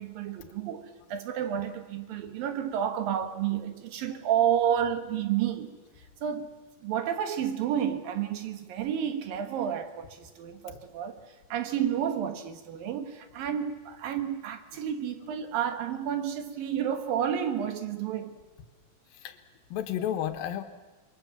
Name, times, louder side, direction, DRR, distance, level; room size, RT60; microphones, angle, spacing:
voice 1, 0.0-6.5 6.8-18.4, right 9 dB, 80° right, 3.3 m, -31 dB
voice 2, 19.1-19.4 19.7-20.6, left 10 dB, 90° left, 3.1 m, -33 dB
29.5 x 22.5 x 7.3 m
omnidirectional pair, 4.0 m